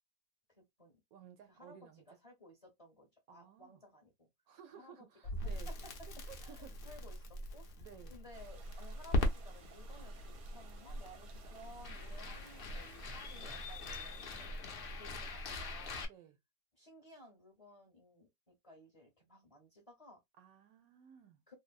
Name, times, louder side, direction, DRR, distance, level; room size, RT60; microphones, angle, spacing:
voice 1, 0.5-1.0 1.5-4.3 4.7-5.1 5.4-5.9 6.4-10.1 10.5-14.6 14.9-16.0 16.7-20.2 21.5-21.6, left 1 dB, 30° left, 0.7 m, -57 dB
voice 2, 1.1-2.0 3.3-3.8 4.5-5.7 6.2-7.1 7.8-8.1 13.3-13.6 16.1-16.4 20.4-21.4, right 9 dB, 70° right, 0.9 m, -57 dB
Crackle, 5.2-16.1, left 1 dB, 75° left, 0.5 m, -41 dB
sound 1, 8.3-14.5, right 6 dB, 85° right, 1.3 m, -60 dB
3.2 x 2.0 x 2.3 m
omnidirectional pair, 1.7 m